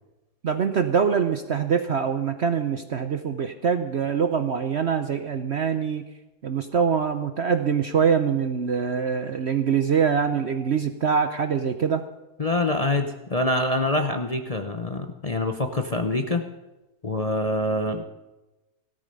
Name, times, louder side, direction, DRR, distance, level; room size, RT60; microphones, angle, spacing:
voice 1, 0.4-6.0 6.4-12.0, right 6 dB, 55° right, 9 dB, 0.8 m, -24 dB
voice 2, 12.4-16.4 17.0-18.0, left 2 dB, 30° left, 5 dB, 0.8 m, -25 dB
16.5 x 13.0 x 5.5 m, 1.0 s
omnidirectional pair, 1.7 m